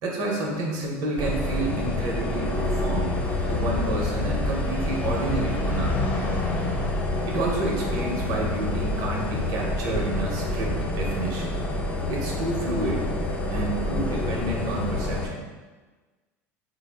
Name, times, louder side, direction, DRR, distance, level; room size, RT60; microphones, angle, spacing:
voice 1, 0.0-6.1 7.3-11.6 12.1-13.1 13.5-15.5, right 2 dB, 60° right, -1 dB, 0.8 m, -29 dB
sound 1, 1.2-15.3, left 2 dB, 25° left, 0.7 m, -27 dB
3.5 x 2.0 x 3.4 m, 1.3 s
supercardioid pair, 95°, 8 cm